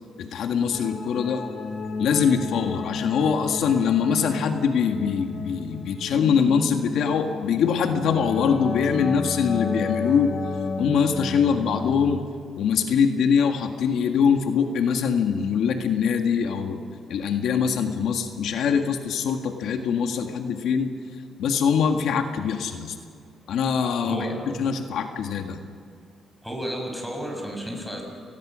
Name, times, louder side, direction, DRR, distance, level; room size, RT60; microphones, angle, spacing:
voice 1, 0.2-1.4 2.0-10.4 10.8-12.2 12.6-16.8 17.1-20.9 21.4-22.9 23.5-24.3 24.6-25.6, left 6 dB, 80° left, 5 dB, 1.7 m, -23 dB
sound 1, 0.7-12.2, left 4 dB, 50° left, 1.7 m, -32 dB
voice 2, 24.1-24.7 26.4-28.0, equal, ahead, 1 dB, 6.7 m, -32 dB
28.5 x 20.0 x 6.3 m, 2.3 s
cardioid pair, 105°, 0 cm